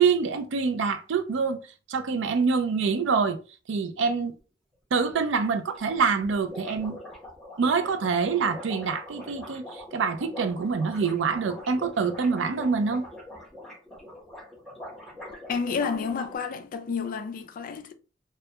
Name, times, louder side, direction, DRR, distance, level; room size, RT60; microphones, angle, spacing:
voice 1, 0.0-1.6 1.9-3.4 3.7-4.3 4.9-7.0 7.6-13.0, right 5 dB, 75° right, 0.4 m, -25 dB
sound 1, 5.1-5.2 5.4-5.5 5.7-5.8 6.1-16.4, left 1 dB, ahead, 0.8 m, -43 dB
voice 2, 15.5-17.9, left 5 dB, 50° left, 0.3 m, -30 dB
2.2 x 2.2 x 2.8 m
head